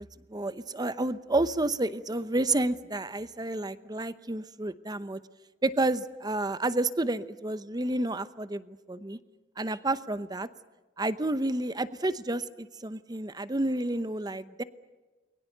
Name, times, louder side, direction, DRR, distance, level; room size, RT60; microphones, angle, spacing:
voice 1, 0.0-5.2 5.6-9.2 9.6-10.5 11.0-14.6, right 2 dB, 20° right, 14 dB, 0.8 m, -30 dB
29.5 x 22.0 x 6.7 m, 1.3 s
head